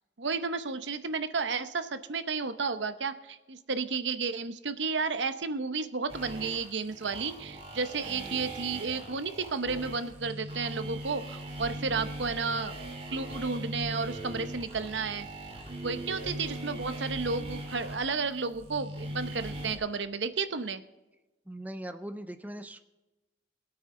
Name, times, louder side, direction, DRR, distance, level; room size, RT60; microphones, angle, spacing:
voice 1, 0.2-12.8 13.1-15.3 15.8-20.8, right 4 dB, 80° right, 11 dB, 0.8 m, -32 dB
sound 1, 6.1-19.8, right 1 dB, 30° right, 3.2 m, -40 dB
voice 2, 21.5-22.8, right 1 dB, 10° right, 10 dB, 0.5 m, -40 dB
20.5 x 8.8 x 3.8 m, 1.1 s
head